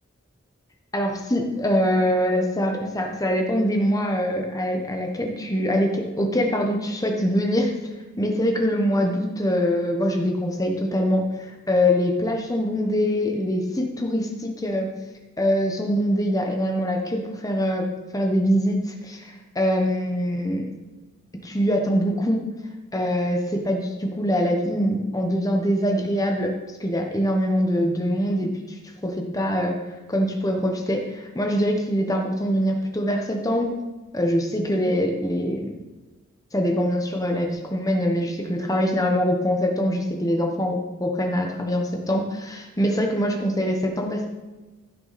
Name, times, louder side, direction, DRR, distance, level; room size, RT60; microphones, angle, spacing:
voice 1, 0.9-7.7 8.2-14.9 15.4-17.9 18.1-20.6 21.4-22.5 22.9-29.7 30.1-33.8 34.1-35.7 36.5-44.3, equal, 15° left, 2 dB, 1.1 m, -23 dB
15.0 x 6.3 x 4.2 m, 1.2 s
head